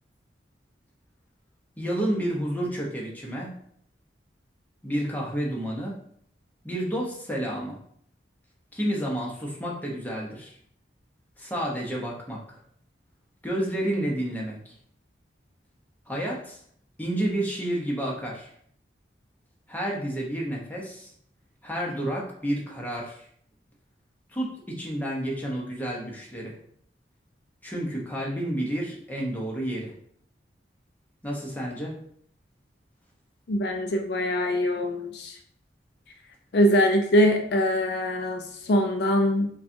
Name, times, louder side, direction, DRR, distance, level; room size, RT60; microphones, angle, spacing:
voice 1, 1.8-3.6 4.8-6.0 6.6-7.8 8.7-10.6 11.4-12.6 13.4-14.7 16.1-16.6 17.0-18.5 19.7-21.1 21.6-23.3 24.3-26.6 27.6-29.9 31.2-32.0, right 1 dB, 10° left, -2 dB, 0.7 m, -30 dB
voice 2, 33.5-35.4 36.5-39.5, equal, 60° left, 3 dB, 0.4 m, -23 dB
5.3 x 2.3 x 2.6 m, 0.63 s
head